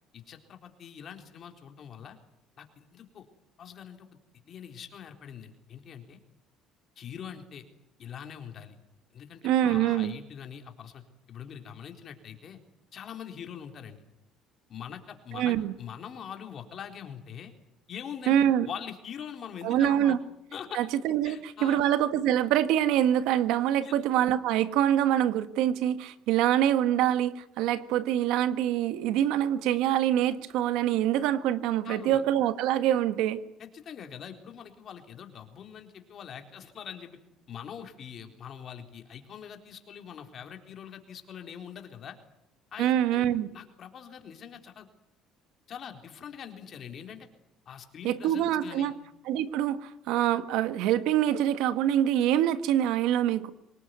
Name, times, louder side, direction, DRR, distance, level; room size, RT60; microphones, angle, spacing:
voice 1, 0.1-2.2 2.6-3.3 3.6-4.1 4.5-6.2 7.0-7.6 8.0-8.8 9.1-11.0 11.3-12.6 12.9-14.0 14.7-17.5 17.9-20.2 20.5-20.8 21.2-21.8 23.8-23.9 31.8-32.2 33.6-37.2 37.5-42.2 42.7-43.3 43.5-44.9 45.7-47.3 47.7-48.9, left 8 dB, 50° left, 5 dB, 3.9 m, -43 dB
voice 2, 9.4-10.1 15.3-15.7 18.3-18.7 19.6-20.2 20.7-33.4 42.8-43.5 48.0-48.9 49.3-53.5, right 11 dB, 80° right, 12 dB, 1.5 m, -25 dB
24.5 x 20.0 x 9.5 m, 0.82 s
cardioid pair, 115°, 0 cm